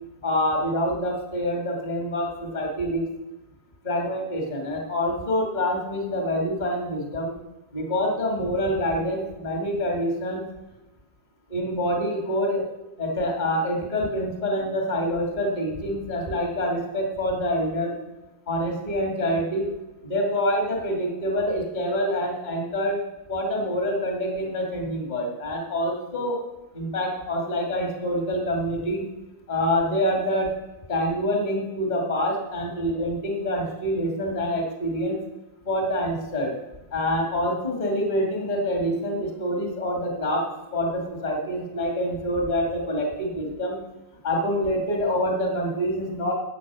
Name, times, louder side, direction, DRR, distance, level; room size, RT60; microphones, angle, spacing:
voice 1, 0.2-3.0 3.8-7.3 7.7-10.4 11.5-12.6 13.0-18.0 18.5-19.7 20.0-23.0 23.3-26.4 26.7-29.0 29.5-30.5 30.9-35.2 35.6-36.5 36.9-40.4 40.7-43.8 44.2-46.3, equal, 30° left, 0 dB, 0.7 m, -26 dB
15.0 x 7.8 x 6.3 m, 1.1 s
omnidirectional pair, 5.0 m